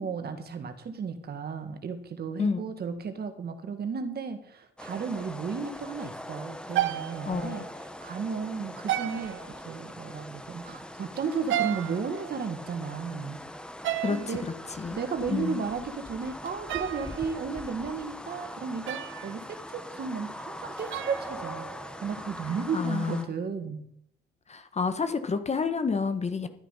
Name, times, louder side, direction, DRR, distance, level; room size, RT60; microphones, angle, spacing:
voice 1, 0.0-7.7 8.0-13.4 14.1-14.5 14.9-23.8, right 5 dB, 50° right, 8 dB, 1.9 m, -34 dB
sound 1, 4.8-23.2, left 1 dB, 5° left, 1.1 m, -42 dB
sound 2, 4.9-5.4 5.6-5.8 6.7-7.8 8.9-9.7 11.3-12.8 13.8-14.4 16.5-17.6 18.9-19.5 20.8-22.0, right 13 dB, 75° right, 0.7 m, -34 dB
voice 2, 7.2-7.7 14.0-14.4 14.8-15.0 15.3-15.6 22.7-23.3 24.5-26.5, left 5 dB, 35° left, 9 dB, 1.5 m, -29 dB
12.0 x 10.0 x 5.7 m, 0.68 s
cardioid pair, 90°, 20 cm